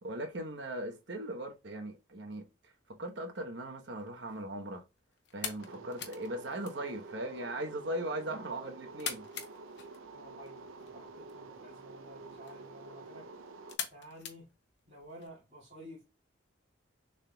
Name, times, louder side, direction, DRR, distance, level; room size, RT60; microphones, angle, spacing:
voice 1, 0.0-4.8 5.3-9.2, right 1 dB, 60° right, 1.0 m, -39 dB
sound 1, 3.9-15.3, left 8 dB, 55° left, 0.7 m, -46 dB
voice 2, 5.5-5.8 10.1-13.4 13.9-14.5 14.9-16.0, equal, 40° right, 2.0 m, -52 dB
sound 2, 5.6-13.7, right 3 dB, 85° right, 0.6 m, -49 dB
6.4 x 3.6 x 2.3 m
head